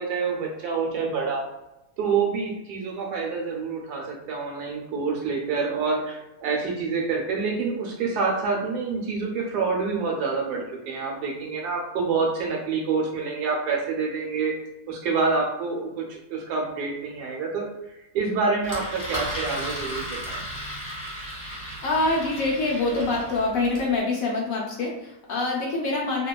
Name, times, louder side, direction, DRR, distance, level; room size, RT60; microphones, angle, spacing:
voice 1, 0.0-1.4 2.0-14.5 14.9-17.7 18.1-20.4, right 4 dB, 80° right, 0 dB, 1.2 m, -27 dB
Engine, 18.6-23.9, equal, 15° left, 0.6 m, -35 dB
voice 2, 21.8-26.3, left 3 dB, 70° left, -2 dB, 0.9 m, -25 dB
2.8 x 2.2 x 2.2 m, 0.93 s
omnidirectional pair, 1.7 m